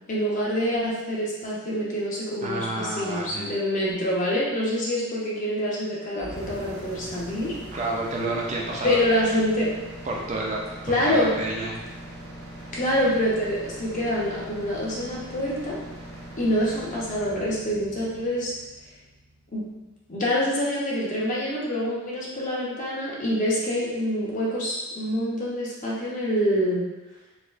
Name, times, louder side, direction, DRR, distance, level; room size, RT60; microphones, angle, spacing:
voice 1, 0.1-7.5 8.8-9.7 10.9-11.3 12.7-15.8 16.4-18.5 19.5-19.7 20.1-26.8, equal, 40° left, -5 dB, 0.7 m, -26 dB
voice 2, 2.4-3.5 7.7-9.0 10.0-10.6 10.9-11.8, right 2 dB, 35° right, -2 dB, 0.4 m, -30 dB
sound 1, 6.1-20.1, right 1 dB, 70° right, 0.7 m, -41 dB
4.1 x 2.1 x 2.5 m, 1.1 s
head